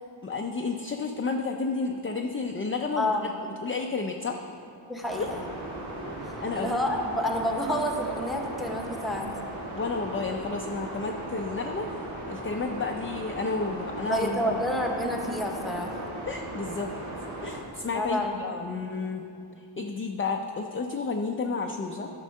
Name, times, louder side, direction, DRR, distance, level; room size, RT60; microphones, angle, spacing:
voice 1, 0.2-3.3 3.6-4.4 6.4-6.7 9.8-12.0 12.3-14.6 16.3-16.9 17.4-19.2 19.6-22.1, left 4 dB, 30° left, 3 dB, 0.4 m, -31 dB
voice 2, 3.0-3.3 4.9-5.5 6.2-9.3 14.1-16.0 17.9-18.7, left 1 dB, ahead, 1 dB, 0.9 m, -29 dB
sound 1, 5.1-17.6, right 1 dB, 80° right, 1.7 m, -37 dB
12.0 x 4.6 x 6.4 m, 2.6 s
wide cardioid pair, 125°, 46 cm